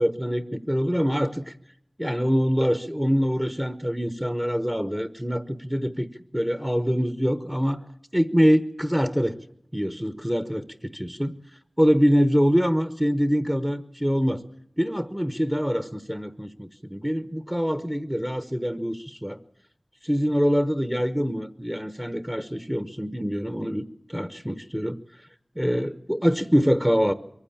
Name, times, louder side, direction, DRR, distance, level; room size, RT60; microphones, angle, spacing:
voice 1, 0.0-1.5 2.0-7.8 8.1-9.4 9.7-11.4 11.8-14.4 14.8-19.4 20.0-25.0 25.5-27.1, equal, 10° right, 10 dB, 1.0 m, -24 dB
23.5 x 15.5 x 8.7 m, 0.73 s
wide cardioid pair, 50°, 0 cm